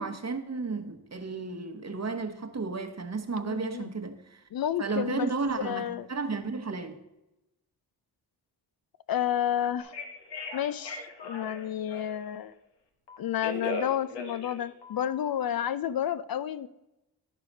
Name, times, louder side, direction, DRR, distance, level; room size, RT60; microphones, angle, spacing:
voice 1, 0.0-4.4 4.8-6.9, right 4 dB, 40° right, 1.1 m, -33 dB
voice 2, 3.4-3.9 4.5-5.3 5.6-6.1 9.1-9.9 10.5-12.5 13.2-16.7, left 10 dB, 60° left, 0.5 m, -30 dB
Telephone, 9.8-12.3 13.1-15.5, left 2 dB, 85° left, 1.3 m, -38 dB
11.0 x 4.8 x 5.2 m
cardioid pair, 50°, 40 cm